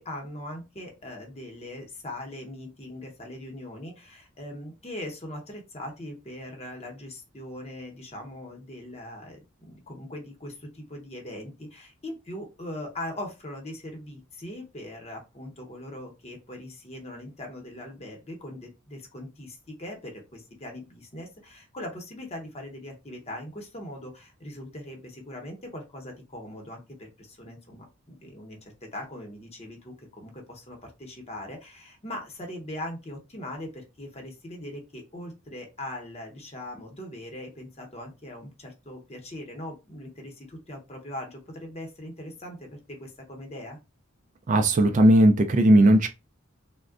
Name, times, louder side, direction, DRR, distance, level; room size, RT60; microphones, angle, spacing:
voice 1, 0.0-43.8, left 1 dB, 30° left, 0.8 m, -40 dB
voice 2, 44.5-46.1, right 1 dB, 35° right, 0.3 m, -17 dB
3.5 x 2.1 x 2.4 m
head